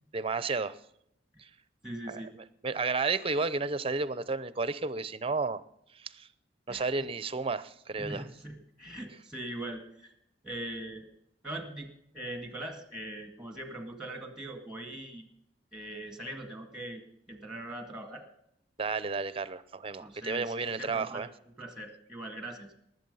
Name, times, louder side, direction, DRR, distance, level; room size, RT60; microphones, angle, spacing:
voice 1, 0.1-0.8 1.4-1.5 2.1-2.2 2.6-5.6 5.9-6.3 6.7-8.2 18.8-21.3, right 4 dB, 30° right, 15 dB, 0.6 m, -32 dB
voice 2, 1.8-2.3 6.7-6.9 8.0-10.1 10.4-11.1 11.4-15.3 15.7-17.0 17.3-18.2 20.0-21.3 21.6-22.7, right 1 dB, 5° right, 5 dB, 2.1 m, -41 dB
19.5 x 7.8 x 5.6 m, 0.77 s
head